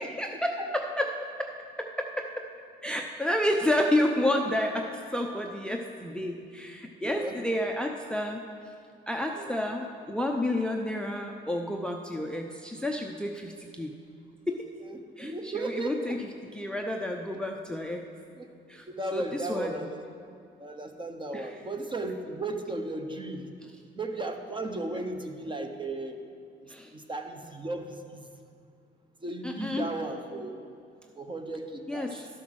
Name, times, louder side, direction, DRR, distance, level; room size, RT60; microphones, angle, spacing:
voice 1, 0.0-1.5 1.8-2.5 2.8-8.4 9.1-13.9 14.5-14.7 15.2-18.1 18.7-18.9 19.1-19.7 21.3-21.5 26.7-26.9 29.4-29.9 31.9-32.2, left 1 dB, 5° left, 3 dB, 0.6 m, -30 dB
voice 2, 7.0-7.3 9.3-9.6 14.8-16.2 18.4-18.5 18.9-20.0 20.6-23.5 23.9-26.2 26.6-28.3 29.2-30.6 31.2-32.3, right 2 dB, 25° right, 5 dB, 1.0 m, -35 dB
12.0 x 5.7 x 6.2 m, 2.3 s
cardioid pair, 90°, 20 cm